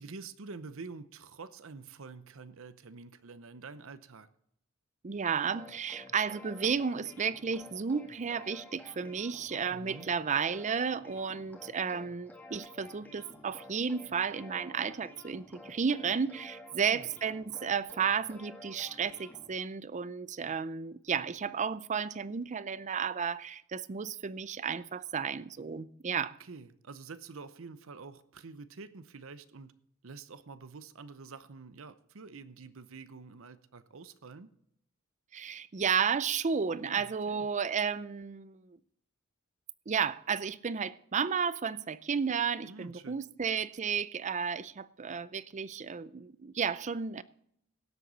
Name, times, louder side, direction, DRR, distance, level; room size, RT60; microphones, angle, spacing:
voice 1, 0.0-4.3 9.7-10.1 16.7-17.1 26.4-29.7 30.0-34.5 36.7-37.5 42.6-43.2, right 4 dB, 65° right, 0.7 m, -47 dB
voice 2, 5.0-26.4 35.3-38.8 39.9-47.2, right 6 dB, 35° right, 0.5 m, -33 dB
sound 1, 5.5-19.5, left 1 dB, 10° left, 1.9 m, -52 dB
17.5 x 7.9 x 4.0 m
head